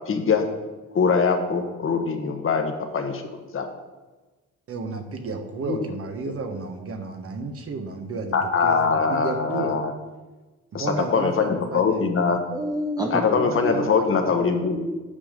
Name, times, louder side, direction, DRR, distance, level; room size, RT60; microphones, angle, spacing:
voice 1, 0.1-0.4 0.9-3.7 5.7-5.8 8.3-9.9 10.7-10.9 11.1-12.4 13.1-14.8, left 5 dB, 45° left, 5 dB, 1.3 m, -22 dB
voice 2, 4.7-9.8 10.7-12.0 13.4-14.5, right 3 dB, 50° right, 5 dB, 1.3 m, -32 dB
voice 3, 12.5-14.0 14.6-15.0, right 1 dB, 15° right, 2 dB, 0.7 m, -29 dB
8.8 x 5.6 x 5.2 m, 1.2 s
cardioid pair, 90°, 30 cm